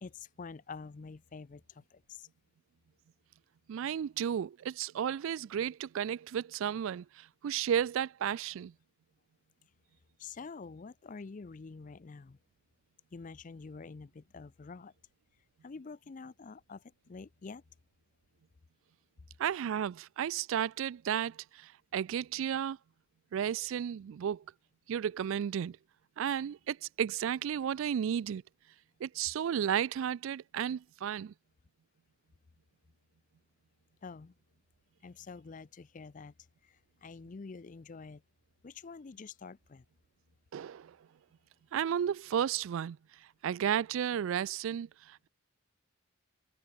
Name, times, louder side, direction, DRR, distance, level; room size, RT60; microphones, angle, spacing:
voice 1, 0.0-2.3 10.2-12.4 13.1-14.9 15.6-17.6 34.0-34.3 35.0-36.3 36.6-38.2 38.6-39.8, left 4 dB, 40° left, 0.4 m, -47 dB
voice 2, 3.7-8.7 19.4-22.8 23.3-24.4 24.9-25.8 26.2-28.4 29.0-31.3 40.5-41.0 41.7-43.0 43.4-45.3, right 9 dB, 65° right, 0.3 m, -33 dB
head